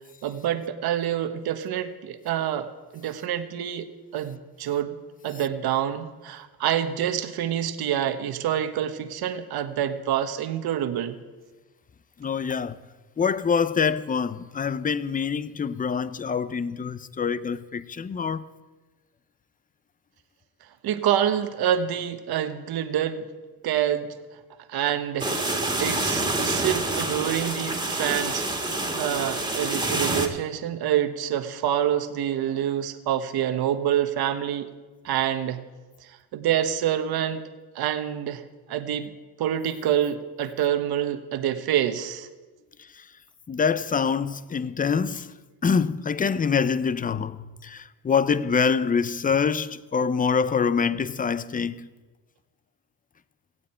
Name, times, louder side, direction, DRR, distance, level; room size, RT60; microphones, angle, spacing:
voice 1, 0.2-4.9 5.2-11.2 20.8-23.3 23.6-24.1 24.7-25.4 25.8-34.7 35.0-35.6 36.0-37.4 37.7-38.4 38.7-39.1 39.4-42.3, right 10 dB, 60° right, 1.4 m, -27 dB
voice 2, 12.2-12.8 13.2-18.5 43.5-45.3 45.6-47.4 47.6-51.9, left 6 dB, 20° left, 0.6 m, -25 dB
sound 1, 25.2-30.3, right 2 dB, 10° right, 2.2 m, -27 dB
17.5 x 16.0 x 4.5 m
cardioid pair, 105°, 42 cm